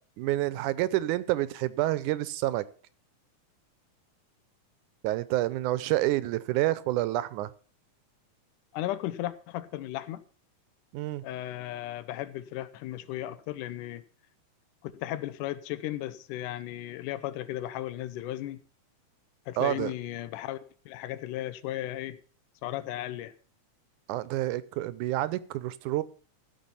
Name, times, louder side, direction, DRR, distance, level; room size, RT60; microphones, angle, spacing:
voice 1, 0.2-2.6 5.0-7.5 10.9-11.2 19.6-19.9 24.1-26.0, right 16 dB, 80° right, 2.2 m, -28 dB
voice 2, 8.7-10.2 11.2-14.0 14.8-18.6 19.5-20.6 20.9-22.2 22.6-23.3, left 14 dB, 85° left, 2.3 m, -35 dB
15.0 x 7.0 x 5.7 m
omnidirectional pair, 3.5 m